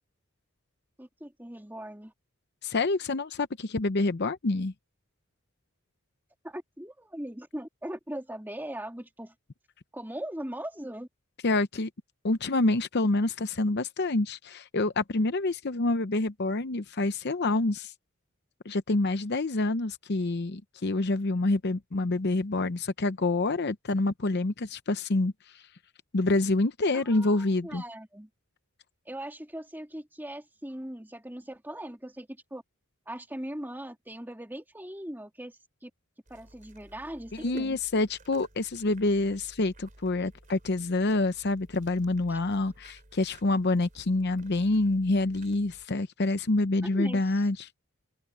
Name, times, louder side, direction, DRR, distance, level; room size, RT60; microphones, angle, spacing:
voice 1, 1.0-2.1 6.4-9.3 9.9-11.1 26.9-28.3 29.1-32.6 33.1-35.9 36.3-37.8 42.3-42.4 46.8-47.5, right 1 dB, 10° right, 2.8 m, -40 dB
voice 2, 2.6-4.7 11.4-11.9 12.2-17.9 18.6-25.6 26.1-27.8 37.3-47.7, left 2 dB, 50° left, 0.7 m, -27 dB
sound 1, 36.3-45.9, right 1 dB, 35° right, 4.5 m, -54 dB
open air
head